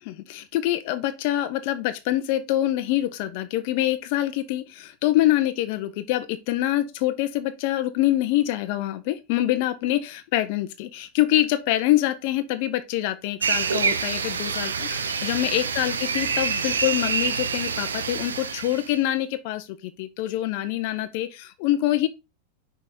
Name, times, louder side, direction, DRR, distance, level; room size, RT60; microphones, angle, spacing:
voice 1, 0.0-22.1, left 14 dB, 45° left, 0.6 m, -25 dB
sound 1, 13.4-18.9, right 5 dB, 70° right, 0.8 m, -27 dB
6.1 x 5.0 x 4.2 m
figure-of-eight pair, 90°, 0 cm